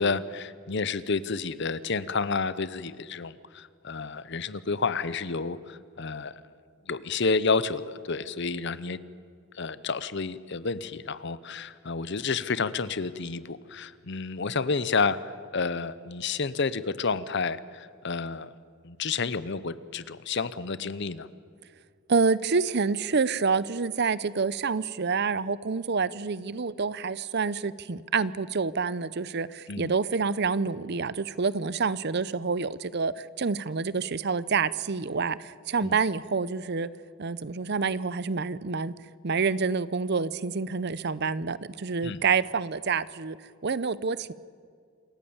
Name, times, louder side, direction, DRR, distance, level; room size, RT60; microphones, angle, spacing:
voice 1, 0.0-6.3 6.9-9.0 9.5-18.5 18.8-21.3 29.7-29.9 35.8-36.0 42.0-42.2, left 4 dB, 55° left, 16 dB, 0.8 m, -30 dB
voice 2, 22.1-36.9 37.2-38.9 39.2-43.4 43.6-44.3, right 5 dB, 50° right, 18 dB, 0.6 m, -27 dB
27.5 x 14.5 x 8.7 m, 2.2 s
head